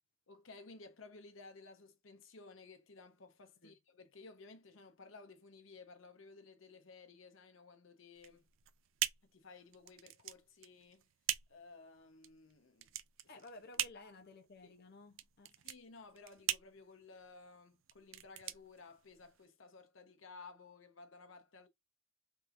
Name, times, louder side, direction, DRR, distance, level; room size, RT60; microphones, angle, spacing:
voice 1, 0.3-8.5 9.3-11.1 11.5-12.9 14.0-14.1 14.6-14.7 15.6-21.7, left 4 dB, 90° left, 0.9 m, -56 dB
sound 1, 8.1-19.5, right 13 dB, 80° right, 0.4 m, -42 dB
voice 2, 13.3-15.6, left 2 dB, 55° left, 0.6 m, -55 dB
3.5 x 2.9 x 2.5 m
head